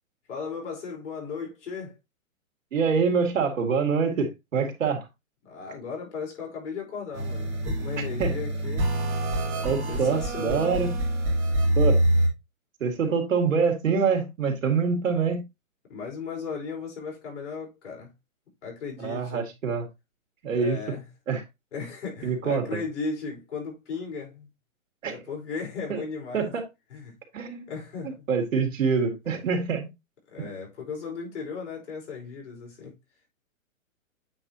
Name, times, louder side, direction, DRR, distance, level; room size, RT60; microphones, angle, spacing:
voice 1, 0.3-2.0 5.4-8.9 9.9-10.9 13.0-13.1 15.9-18.1 18.6-19.5 20.5-21.1 21.7-24.5 25.1-26.5 26.9-27.1 27.7-28.3 29.3-29.4 30.3-32.9, left 5 dB, 60° left, 4.9 m, -36 dB
voice 2, 2.7-5.1 8.2-8.4 9.6-11.0 11.8-12.0 12.8-15.4 19.0-19.9 20.4-20.8 21.3-21.4 22.2-22.8 25.0-25.2 25.9-26.0 26.3-26.7 27.3-27.6 28.0-29.9 30.4-30.5, right 5 dB, 70° right, 2.5 m, -25 dB
sound 1, 7.1-12.3, right 1 dB, 15° right, 3.2 m, -25 dB
8.9 x 5.2 x 2.9 m
hypercardioid pair, 170°, 41 cm